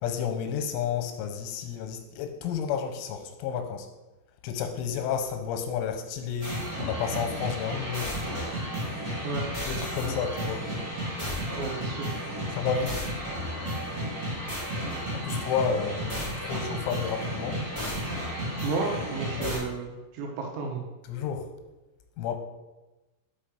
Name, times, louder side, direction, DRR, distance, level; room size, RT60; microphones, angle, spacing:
voice 1, 0.0-3.9 4.4-8.2 9.6-10.7 12.5-13.1 15.1-17.6 19.3-19.6 21.1-21.5 22.2-22.4, left 7 dB, 90° left, 7 dB, 3.1 m, -31 dB
sound 1, 6.4-19.6, equal, 35° right, 0.5 m, -33 dB
voice 2, 11.6-12.1 18.6-20.9, right 4 dB, 80° right, 1 dB, 3.1 m, -32 dB
5.9 x 5.6 x 5.0 m, 1.1 s
omnidirectional pair, 5.6 m